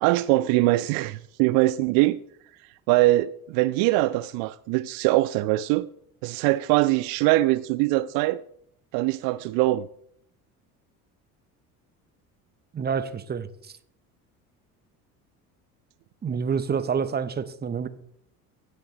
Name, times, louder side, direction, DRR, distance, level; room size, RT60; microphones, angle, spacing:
voice 1, 0.0-2.2 2.9-5.9 6.2-8.4 8.9-9.9, right 18 dB, 55° right, 0.5 m, -22 dB
voice 2, 12.7-13.7 16.2-17.9, right 6 dB, 20° right, 0.8 m, -28 dB
16.5 x 6.6 x 3.2 m
hypercardioid pair, 65°, 45 cm